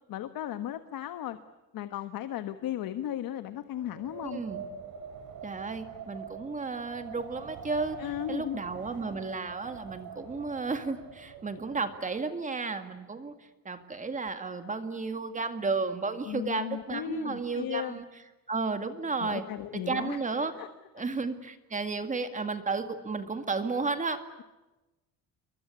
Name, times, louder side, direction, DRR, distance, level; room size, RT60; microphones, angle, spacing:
voice 1, 0.1-1.4 1.7-4.4 8.0-8.6 16.3-18.0 19.2-20.7, left 11 dB, 65° left, 10 dB, 1.5 m, -36 dB
Wind, 3.8-12.2, right 7 dB, 65° right, 5.4 m, -45 dB
voice 2, 4.3-4.6 5.4-8.0 8.3-13.3 13.7-18.0 18.5-19.4 19.7-20.5 20.9-24.4, right 4 dB, 20° right, 8 dB, 2.1 m, -33 dB
28.5 x 23.5 x 8.4 m, 1.0 s
cardioid pair, 175°, 37 cm